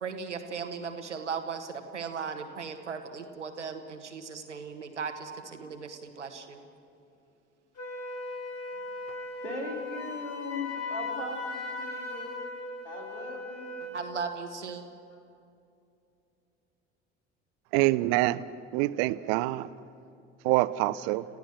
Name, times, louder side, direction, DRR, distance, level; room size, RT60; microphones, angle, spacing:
voice 1, 0.0-6.6 13.8-14.8, right 5 dB, 90° right, 7 dB, 1.5 m, -37 dB
Wind instrument woodwind instrument, 7.8-14.1, left 2 dB, 50° left, 6.5 m, -38 dB
voice 2, 9.4-12.3 12.8-13.8 15.1-15.2, left 2 dB, 85° left, 1 dB, 3.1 m, -39 dB
voice 3, 17.7-18.4 18.7-19.7 20.4-21.2, right 18 dB, 60° right, 17 dB, 0.8 m, -25 dB
29.5 x 15.5 x 6.3 m, 2.6 s
figure-of-eight pair, 60°, 34 cm